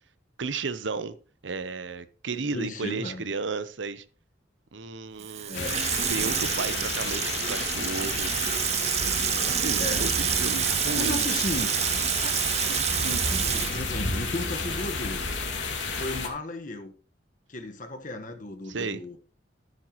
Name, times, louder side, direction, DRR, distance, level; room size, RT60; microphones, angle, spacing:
voice 1, 0.4-1.2 1.4-4.0 4.7-5.6 6.1-8.3 9.5-11.3 18.7-19.0, right 4 dB, 85° right, 0.8 m, -33 dB
voice 2, 2.3-3.3 5.5-5.8 9.8-10.1 11.0-11.7 12.2-15.4 16.0-16.9 17.5-19.2, left 2 dB, 45° left, 1.4 m, -35 dB
Water tap faucet / Sink (filling or washing), 5.2-14.9 15.2-15.3, right 10 dB, 35° right, 0.5 m, -28 dB
sound 1, 5.5-16.3, left 4 dB, 85° left, 2.5 m, -31 dB
13.5 x 9.0 x 3.0 m
head